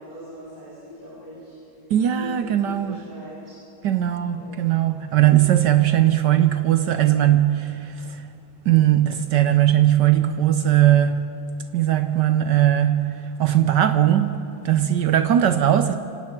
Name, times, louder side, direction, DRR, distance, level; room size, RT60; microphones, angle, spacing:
voice 1, 0.0-1.6 2.1-3.6 4.1-4.6 5.1-5.4, left 1 dB, 25° right, 5.4 m, -41 dB
voice 2, 1.9-3.0 3.8-8.2 8.7-11.3 11.7-16.0, right 12 dB, 65° right, 1.1 m, -19 dB
25.0 x 17.5 x 5.9 m
omnidirectional pair, 2.3 m